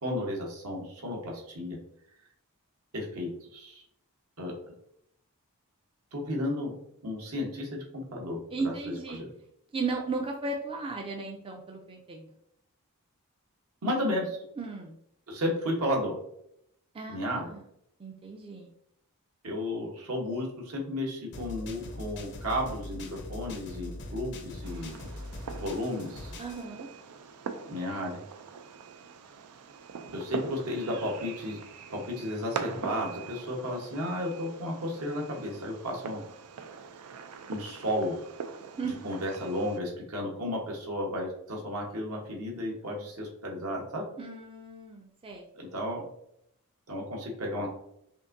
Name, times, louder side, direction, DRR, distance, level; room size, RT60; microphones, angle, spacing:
voice 1, 0.0-1.8 2.9-3.8 4.4-4.5 6.1-6.7 7.0-8.4 9.1-9.3 13.8-14.4 15.3-16.1 17.1-17.5 19.4-25.0 25.5-26.3 27.7-28.2 30.1-31.6 31.9-36.2 37.5-38.2 39.0-44.1 45.5-46.1 46.9-47.7, left 1 dB, 70° right, -1 dB, 1.1 m, -33 dB
voice 2, 8.5-9.2 9.7-12.4 14.6-14.9 16.9-17.7 18.0-18.7 26.4-26.9 38.6-38.9 44.2-45.5, right 3 dB, 25° right, 1 dB, 0.4 m, -36 dB
sound 1, 21.3-26.6, left 2 dB, 50° left, 0.5 m, -41 dB
Fireworks, 24.6-39.8, right 6 dB, 90° right, 0.4 m, -43 dB
5.1 x 2.6 x 2.6 m, 0.75 s
head